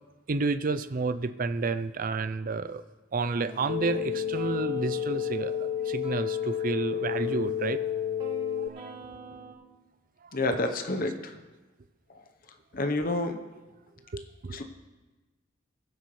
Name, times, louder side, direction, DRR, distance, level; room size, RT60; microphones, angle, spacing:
voice 1, 0.3-2.8 3.1-7.8 8.6-8.9 14.1-14.6, right 4 dB, 45° right, 12 dB, 0.5 m, -30 dB
sound 1, 3.5-9.5, right 2 dB, 25° right, 2.5 m, -45 dB
sound 2, 3.7-8.7, left 10 dB, 65° left, 0.3 m, -31 dB
voice 2, 10.3-11.3 12.7-13.4 14.5-14.6, left 2 dB, 45° left, 5 dB, 0.9 m, -28 dB
21.0 x 8.0 x 3.2 m, 1.2 s
head